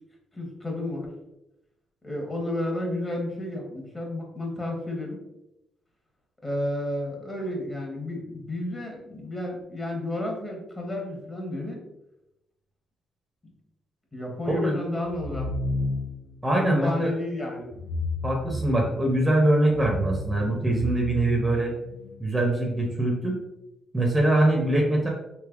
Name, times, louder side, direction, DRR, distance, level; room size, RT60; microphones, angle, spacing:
voice 1, 0.3-1.1 2.0-5.2 6.4-11.8 14.1-15.5 16.5-17.7, left 1 dB, 20° left, 0 dB, 0.9 m, -31 dB
voice 2, 14.5-14.8 16.4-17.1 18.2-21.7 22.2-23.4 23.9-25.1, right 1 dB, 15° right, 0 dB, 0.6 m, -23 dB
sound 1, 15.1-16.3 17.7-19.1 19.6-22.2, left 1 dB, 60° left, 0.4 m, -32 dB
3.3 x 2.7 x 2.4 m, 0.90 s
cardioid pair, 90°, 0 cm